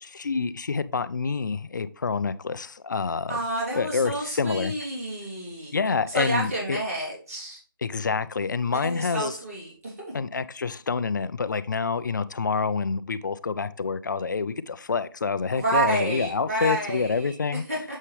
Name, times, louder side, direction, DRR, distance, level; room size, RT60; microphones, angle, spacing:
voice 1, 0.1-3.4 3.7-4.7 5.7-6.8 7.8-9.3 10.1-17.6, left 5 dB, 55° left, 14 dB, 0.5 m, -27 dB
voice 2, 3.3-5.7 6.1-7.6 8.6-9.9 15.6-18.0, right 1 dB, 40° right, -5 dB, 3.2 m, -29 dB
7.4 x 5.5 x 3.3 m, 0.41 s
figure-of-eight pair, 165°, 12 cm